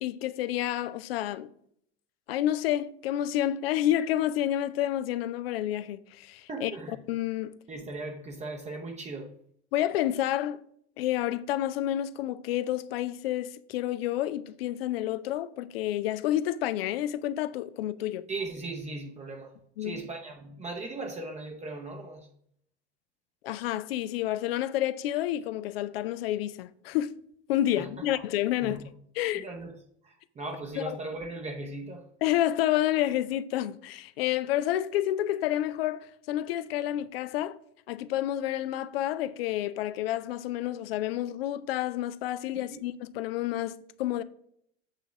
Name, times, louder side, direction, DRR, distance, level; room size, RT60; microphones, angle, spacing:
voice 1, 0.0-1.5 2.3-7.5 9.7-10.6 11.0-18.3 19.8-20.0 23.4-27.1 27.5-28.8 29.1-29.5 30.8-31.0 32.2-37.6 37.9-44.2, left 13 dB, 60° left, 0.5 m, -29 dB
voice 2, 6.5-6.9 7.7-9.3 18.3-19.5 19.8-22.3 27.8-28.2 28.6-28.8 29.3-29.7 30.1-32.1 42.6-42.8, right 2 dB, 20° right, 0.8 m, -38 dB
8.1 x 4.0 x 5.8 m
figure-of-eight pair, 70°, 35 cm